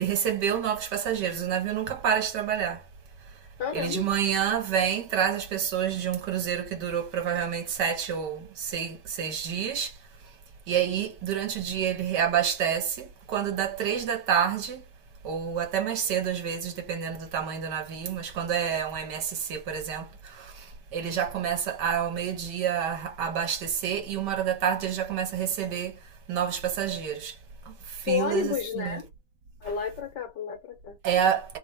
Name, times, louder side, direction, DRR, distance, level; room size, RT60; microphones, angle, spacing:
voice 1, 0.0-2.9 3.7-10.0 10.7-14.8 15.2-26.0 26.3-27.4 27.6-29.0 31.0-31.6, right 8 dB, 70° right, 1.5 m, -28 dB
voice 2, 3.6-4.1 28.1-29.1 29.6-31.0, left 8 dB, 75° left, 1.6 m, -31 dB
3.5 x 2.2 x 4.2 m
omnidirectional pair, 1.9 m